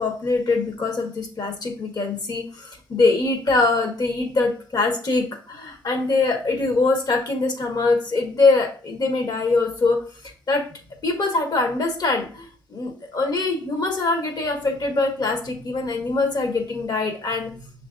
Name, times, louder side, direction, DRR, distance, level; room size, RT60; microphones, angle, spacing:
voice 1, 0.0-10.0 10.5-10.6 11.0-17.5, left 3 dB, 55° left, 3 dB, 1.5 m, -23 dB
6.4 x 3.2 x 2.5 m, 0.39 s
cardioid pair, 75°, 8 cm